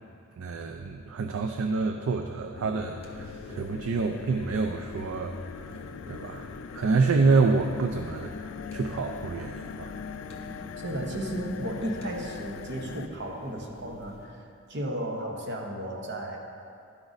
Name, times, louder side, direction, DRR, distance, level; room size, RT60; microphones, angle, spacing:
voice 1, 0.4-5.8 6.1-9.9, right 4 dB, 80° right, 5 dB, 0.4 m, -27 dB
sound 1, 2.5-13.1, left 6 dB, 75° left, 0.3 m, -41 dB
sound 2, 3.0-14.3, right 1 dB, 30° left, 1.1 m, -47 dB
voice 2, 10.8-16.4, right 1 dB, 60° right, 0 dB, 0.9 m, -34 dB
12.0 x 4.0 x 4.9 m, 2.5 s
head